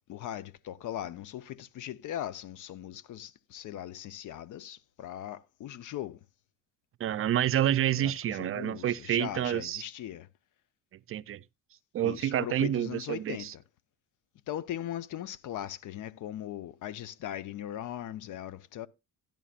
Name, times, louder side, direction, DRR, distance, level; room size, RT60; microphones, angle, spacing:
voice 1, 0.1-6.2 8.0-10.3 12.0-13.6 14.5-18.9, left 11 dB, 75° left, 0.8 m, -39 dB
voice 2, 7.0-9.8 11.1-11.4 11.9-13.5, right 11 dB, 45° right, 0.4 m, -28 dB
12.5 x 10.5 x 2.4 m
cardioid pair, 135°, 30 cm